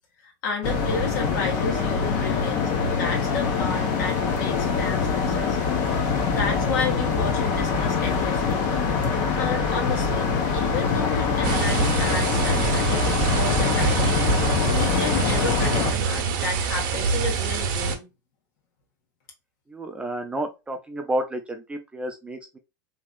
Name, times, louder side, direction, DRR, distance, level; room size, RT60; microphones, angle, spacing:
voice 1, 0.2-5.6 6.0-8.7 9.4-18.1, left 4 dB, 65° left, 1.4 m, -32 dB
sound 1, 0.6-15.9, left 5 dB, 50° left, 0.9 m, -24 dB
sound 2, 11.4-18.0, right 5 dB, 60° right, 0.8 m, -25 dB
voice 2, 19.7-22.6, right 1 dB, 10° right, 0.4 m, -31 dB
3.0 x 2.8 x 2.2 m
supercardioid pair, 135°, 11 cm